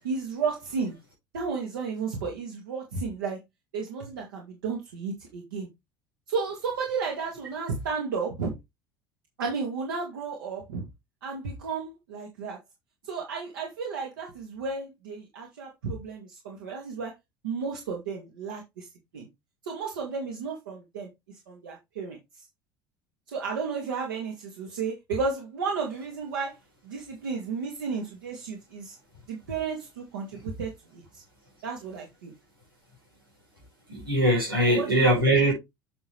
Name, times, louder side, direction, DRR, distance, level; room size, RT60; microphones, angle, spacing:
voice 1, 0.0-0.9 1.3-3.4 3.7-5.7 6.3-8.5 9.4-10.8 11.2-12.6 13.0-17.1 17.4-18.9 19.1-19.3 19.6-21.1 21.5-22.2 23.3-26.5 26.9-28.9 29.3-31.0 31.6-32.3 34.7-35.1, right 5 dB, 65° right, 2.1 m, -33 dB
voice 2, 33.9-35.5, right 1 dB, 85° right, 5.0 m, -21 dB
8.5 x 5.7 x 3.3 m
figure-of-eight pair, 65°, 12 cm